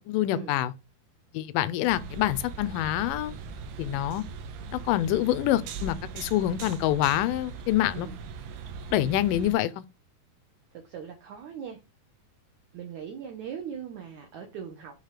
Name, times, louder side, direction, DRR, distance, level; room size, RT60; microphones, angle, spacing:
voice 1, 0.1-0.7 1.3-3.3 3.8-4.2 4.7-8.1 8.9-9.8, left 13 dB, 80° left, 2.0 m, -26 dB
sound 1, 1.9-9.5, right 4 dB, 85° right, 3.0 m, -40 dB
voice 2, 10.7-11.8 12.7-14.9, right 8 dB, 65° right, 2.2 m, -39 dB
8.3 x 3.6 x 4.8 m
omnidirectional pair, 4.4 m